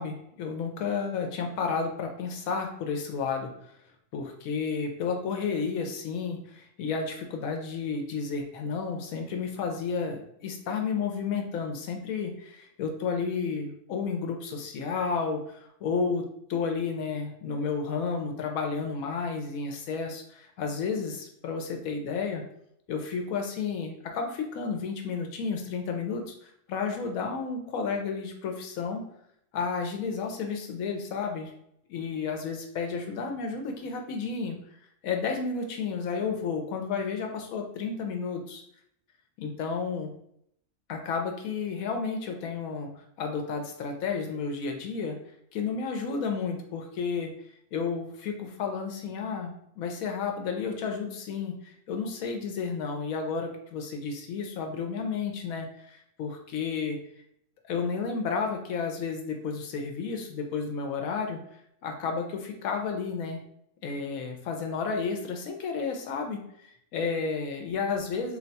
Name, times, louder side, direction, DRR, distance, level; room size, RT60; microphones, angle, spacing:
voice 1, 0.0-3.7 4.1-22.4 22.9-29.1 29.5-31.5 31.9-34.6 35.0-38.6 39.4-40.1 40.9-42.9 43.2-45.2 45.5-47.3 47.7-57.0 57.6-61.4 61.8-63.4 63.8-68.4, left 5 dB, 75° left, 4 dB, 1.0 m, -32 dB
2.6 x 2.2 x 3.9 m, 0.72 s
omnidirectional pair, 1.5 m